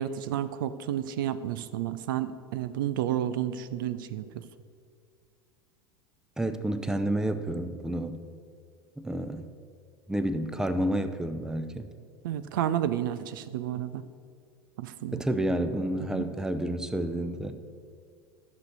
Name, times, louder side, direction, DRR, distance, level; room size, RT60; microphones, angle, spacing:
voice 1, 0.0-4.5 12.2-14.0 14.8-15.2 16.1-16.3, right 11 dB, 55° right, 13 dB, 0.5 m, -31 dB
voice 2, 6.4-8.2 9.0-9.5 10.1-11.9 15.1-17.7, right 1 dB, 5° right, 10 dB, 0.6 m, -30 dB
12.0 x 6.4 x 6.6 m, 2.1 s
figure-of-eight pair, 80°, 13 cm